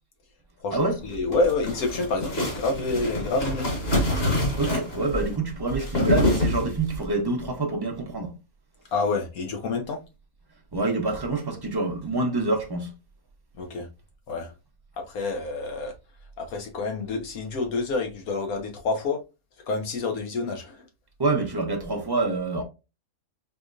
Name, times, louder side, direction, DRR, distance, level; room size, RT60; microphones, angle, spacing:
voice 1, 0.6-3.6 8.9-10.0 13.6-13.9 14.3-14.5 15.1-15.9 16.4-19.2 19.7-20.8, left 3 dB, 80° left, 1.3 m, -28 dB
sound 1, 1.0-7.0, left 1 dB, 45° left, 1.7 m, -26 dB
voice 2, 4.6-8.3 10.7-12.9 21.2-22.6, right 3 dB, 25° right, 0.5 m, -26 dB
4.8 x 3.1 x 2.5 m
omnidirectional pair, 1.5 m